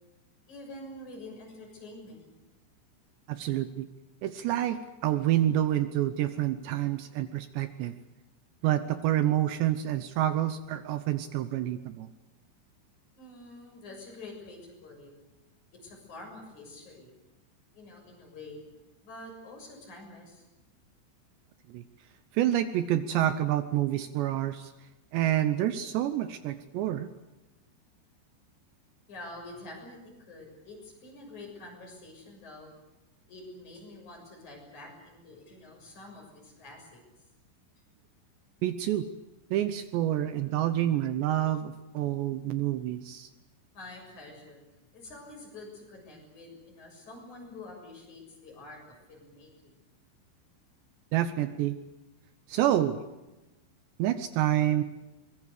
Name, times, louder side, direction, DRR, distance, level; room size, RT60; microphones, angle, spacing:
voice 1, 0.5-2.2 13.2-15.1 15.7-17.1 17.7-18.6 19.0-20.4 29.1-32.7 33.3-37.3 43.7-44.6 44.9-49.7, left 2 dB, 40° left, 1 dB, 8.0 m, -47 dB
voice 2, 3.3-3.9 4.2-8.0 8.6-12.1 21.7-21.8 22.3-24.7 25.1-27.1 38.6-39.0 39.5-43.3 51.1-51.8 52.5-53.0 54.0-54.8, right 12 dB, 75° right, 11 dB, 2.9 m, -28 dB
23.5 x 22.0 x 8.3 m, 1.0 s
omnidirectional pair, 5.5 m